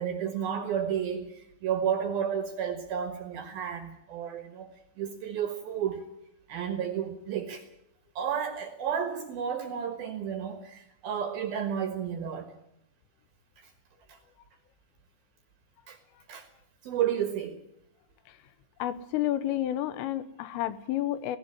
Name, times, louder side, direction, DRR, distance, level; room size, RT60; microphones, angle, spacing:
voice 1, 0.0-4.7 5.0-6.0 6.5-7.6 8.2-12.5 13.6-13.7 14.1-14.2 15.9-16.0 16.3-16.5 16.8-17.6, right 8 dB, 65° right, 8 dB, 2.6 m, -32 dB
voice 2, 18.8-21.4, left 13 dB, 80° left, 14 dB, 3.5 m, -30 dB
17.5 x 17.5 x 9.9 m, 0.80 s
omnidirectional pair, 6.0 m